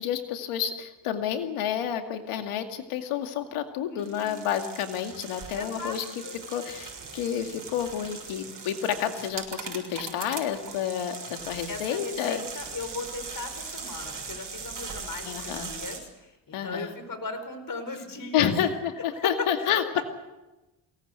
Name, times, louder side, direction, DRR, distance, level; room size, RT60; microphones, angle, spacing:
voice 1, 0.0-6.0 6.5-12.4 15.3-15.7 16.5-16.9 18.3-18.9 19.2-20.0, left 9 dB, 85° left, 6 dB, 2.4 m, -29 dB
voice 2, 3.9-4.4 5.5-6.4 11.7-18.7 19.0-19.3 19.6-20.0, left 3 dB, 40° left, 9 dB, 5.1 m, -37 dB
sound 1, 4.0-16.0, right 5 dB, 40° right, 6.6 m, -40 dB
23.5 x 18.5 x 8.2 m, 1.0 s
supercardioid pair, 65°, 49 cm